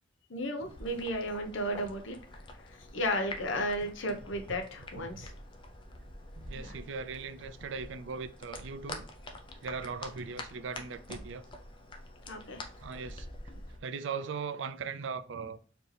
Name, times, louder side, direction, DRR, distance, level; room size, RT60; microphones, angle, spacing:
voice 1, 0.3-5.3 6.5-6.8 12.3-12.6, equal, 85° left, 0.9 m, -34 dB
sound 1, 0.7-13.8, left 2 dB, 25° left, 0.5 m, -47 dB
voice 2, 6.4-9.1 9.6-11.4 12.6-13.5 13.8-15.6, right 5 dB, 75° right, 0.4 m, -39 dB
4.3 x 2.9 x 3.3 m
head